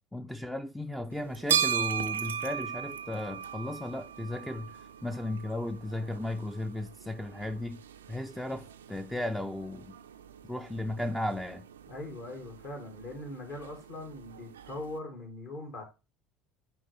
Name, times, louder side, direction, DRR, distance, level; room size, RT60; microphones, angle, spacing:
voice 1, 0.1-7.8 8.1-10.0 10.5-11.7, left 1 dB, 5° left, 0.4 m, -35 dB
sound 1, 1.1-15.0, right 9 dB, 75° right, 0.4 m, -37 dB
voice 2, 11.9-15.8, left 2 dB, 55° left, 2.2 m, -41 dB
8.6 x 3.6 x 3.2 m
figure-of-eight pair, 65°, 0 cm